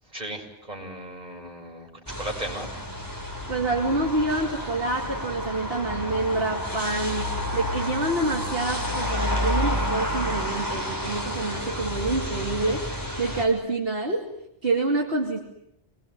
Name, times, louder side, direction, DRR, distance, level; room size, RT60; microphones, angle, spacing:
voice 1, 0.0-2.7, right 1 dB, 40° right, 0 dB, 6.8 m, -36 dB
sound 1, 2.1-13.5, equal, 15° left, 4.7 m, -30 dB
voice 2, 3.5-14.2 14.6-15.4, right 2 dB, 60° right, 0 dB, 3.0 m, -27 dB
28.0 x 22.0 x 9.5 m, 0.79 s
omnidirectional pair, 1.1 m